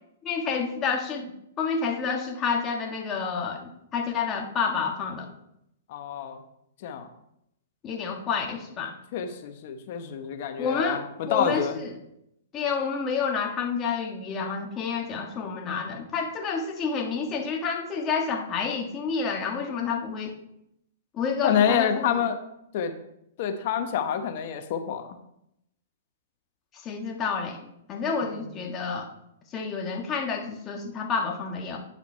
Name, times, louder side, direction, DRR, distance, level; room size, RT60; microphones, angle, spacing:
voice 1, 0.2-5.3 7.8-8.9 10.6-11.0 11.3-11.9 12.5-20.3 21.1-22.3 26.8-27.6 27.9-29.1 29.5-31.8, left 5 dB, 25° left, 2 dB, 1.5 m, -29 dB
voice 2, 5.9-6.4 6.8-7.1 9.1-11.8 21.4-22.4 22.7-22.9 23.4-25.1 28.2-28.4, left 8 dB, 50° left, 6 dB, 1.1 m, -27 dB
9.5 x 5.7 x 4.5 m, 0.79 s
hypercardioid pair, 130°, 0 cm